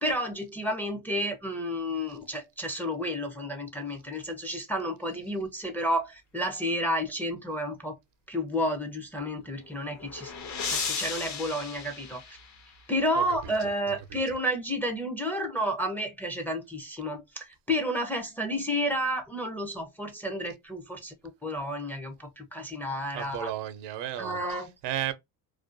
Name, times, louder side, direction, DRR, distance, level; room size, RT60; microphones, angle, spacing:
voice 1, 0.0-8.0 8.3-10.3 10.7-12.2 12.9-21.1 21.4-23.5 24.2-24.7, equal, 5° left, 0.4 m, -31 dB
sound 1, 9.5-12.9, left 5 dB, 45° left, 0.7 m, -35 dB
voice 2, 13.2-14.2 23.1-25.1, right 11 dB, 90° right, 0.6 m, -35 dB
2.4 x 2.2 x 2.5 m
cardioid pair, 135°, 40 cm